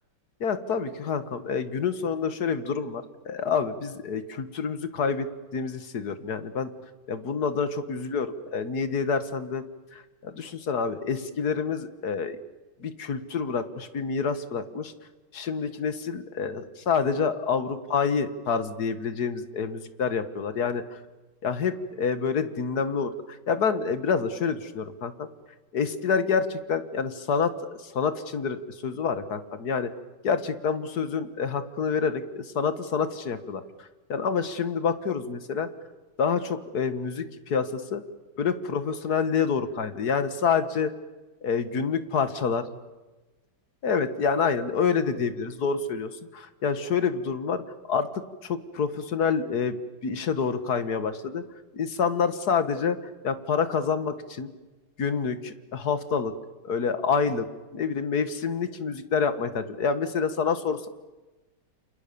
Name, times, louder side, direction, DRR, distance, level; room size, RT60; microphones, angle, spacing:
voice 1, 0.4-6.7 7.1-9.6 9.9-12.4 12.8-14.9 15.3-21.0 21.4-25.3 25.7-29.9 30.2-35.7 36.2-38.0 38.4-40.9 41.4-42.6 43.8-47.6 47.9-49.8 50.0-51.4 51.7-53.0 53.2-54.5 55.0-56.3 56.6-57.5 57.7-60.9, left 5 dB, 50° left, 11 dB, 2.0 m, -27 dB
29.0 x 28.0 x 7.0 m, 1.2 s
omnidirectional pair, 2.2 m